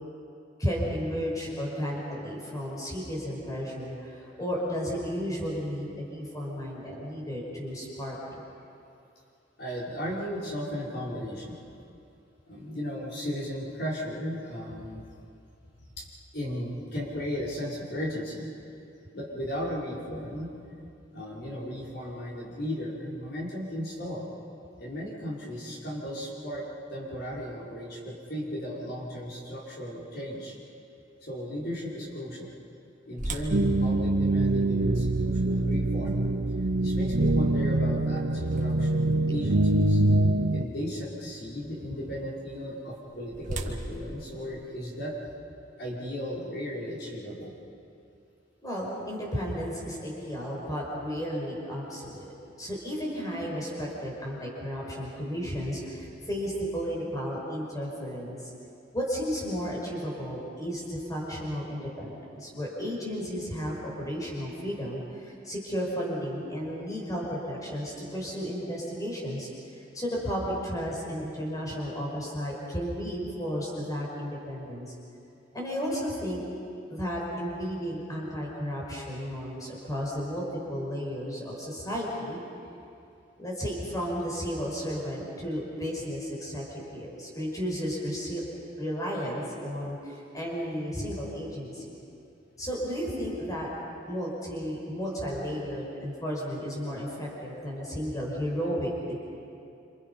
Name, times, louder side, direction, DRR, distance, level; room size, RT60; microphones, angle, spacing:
voice 1, 0.6-8.4 48.6-52.3 52.6-58.5 58.9-69.5 69.8-74.9 75.5-76.4 76.9-82.4 83.4-88.4 88.8-92.0 92.6-93.7 94.1-99.2, equal, 20° left, -3 dB, 5.3 m, -33 dB
voice 2, 9.6-11.6 12.5-15.0 16.0-16.1 16.3-18.5 19.1-20.5 21.1-24.3 24.8-26.6 26.9-30.5 31.2-32.5 33.1-36.2 36.8-40.0 40.5-45.1 45.8-47.5, equal, 55° left, -5 dB, 5.4 m, -35 dB
sound 1, 33.2-39.1 39.7-39.8 40.4-40.6 42.7-45.3, right 1 dB, 40° right, 1.8 m, -41 dB
sound 2, 33.5-40.6, right 2 dB, 60° right, 0.8 m, -24 dB
27.5 x 27.5 x 5.7 m, 2.6 s
head